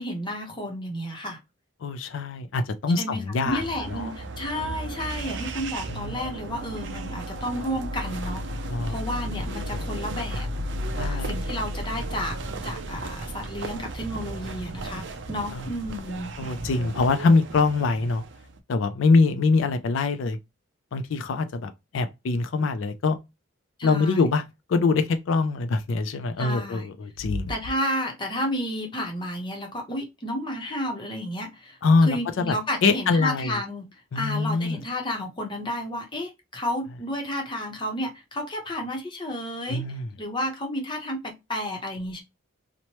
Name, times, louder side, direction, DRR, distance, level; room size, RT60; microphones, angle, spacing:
voice 1, 0.0-1.4 3.0-8.4 8.9-10.5 11.0-12.4 12.6-16.3 23.8-24.2 26.4-26.9 27.5-39.8 40.2-42.2, equal, 25° left, 0.7 m, -32 dB
voice 2, 1.8-3.6 3.9-4.1 5.9-6.2 8.7-8.9 10.9-11.3 15.5-15.7 16.4-18.2 18.7-20.4 20.9-23.2 23.8-24.4 24.7-27.5 31.8-32.5 32.8-33.6 34.1-34.8 39.7-40.1, left 3 dB, 70° left, 0.4 m, -24 dB
sound 1, 3.4-18.6, right 1 dB, 60° right, 0.5 m, -34 dB
3.0 x 2.1 x 2.9 m
head